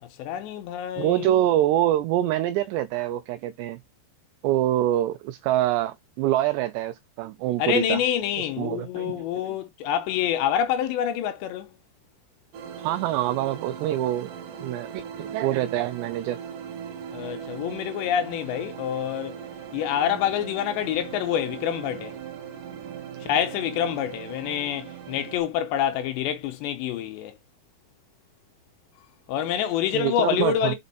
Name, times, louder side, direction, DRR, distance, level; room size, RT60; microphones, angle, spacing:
voice 1, 0.0-1.3 7.6-11.7 17.1-19.4 19.7-22.2 23.2-27.3 29.3-30.8, left 10 dB, 80° left, 2.7 m, -27 dB
voice 2, 1.0-3.8 4.4-8.0 8.6-9.3 12.8-14.3 14.6-16.4 29.9-30.8, right 13 dB, 90° right, 2.4 m, -25 dB
sound 1, 12.5-25.4, right 8 dB, 75° right, 2.0 m, -39 dB
6.1 x 5.3 x 4.1 m
omnidirectional pair, 5.6 m